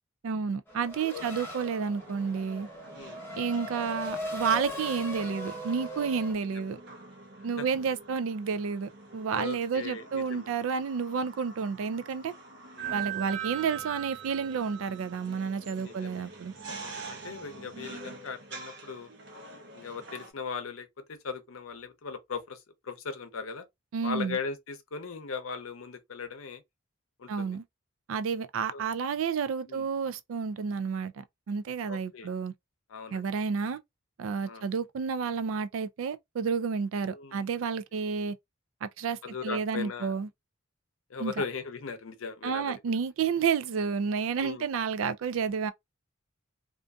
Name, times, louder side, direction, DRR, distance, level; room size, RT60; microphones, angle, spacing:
voice 1, 0.2-2.7 3.4-6.8 7.4-12.3 12.9-16.5 23.9-24.4 27.3-27.6 28.1-32.5 33.1-33.8 34.2-38.3 38.8-40.3 41.2-41.3 42.4-45.7, right 6 dB, 80° right, 0.3 m, -30 dB
Race car auto racing / Accelerating revving vroom, 0.7-6.3, left 1 dB, 10° left, 0.8 m, -39 dB
sound 1, 1.9-20.3, right 6 dB, 55° right, 0.7 m, -44 dB
voice 2, 9.3-10.5 12.7-13.1 15.8-16.3 16.7-19.1 19.7-23.7 24.0-26.6 27.2-27.6 28.7-28.8 29.7-29.9 31.9-32.3 32.9-33.3 34.4-34.6 37.0-37.6 39.2-40.1 41.1-42.7 44.4-44.7, left 5 dB, 85° left, 0.6 m, -39 dB
2.5 x 2.5 x 2.3 m
head